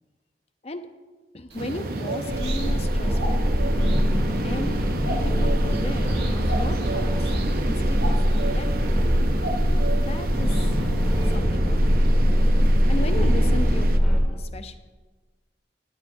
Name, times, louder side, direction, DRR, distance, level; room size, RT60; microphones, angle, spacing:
voice 1, 1.3-3.7 4.4-4.8 5.1-7.3 7.6-9.0 10.0-10.8 11.2-12.2 12.9-14.8, left 2 dB, 35° left, 8 dB, 0.6 m, -36 dB
sound 1, 1.5-11.4, right 2 dB, 70° right, 1.4 m, -37 dB
sound 2, 1.6-14.0, right 2 dB, 55° right, 0.6 m, -30 dB
sound 3, 2.3-14.2, equal, ahead, 1.7 m, -22 dB
16.0 x 9.9 x 2.7 m, 1.3 s
head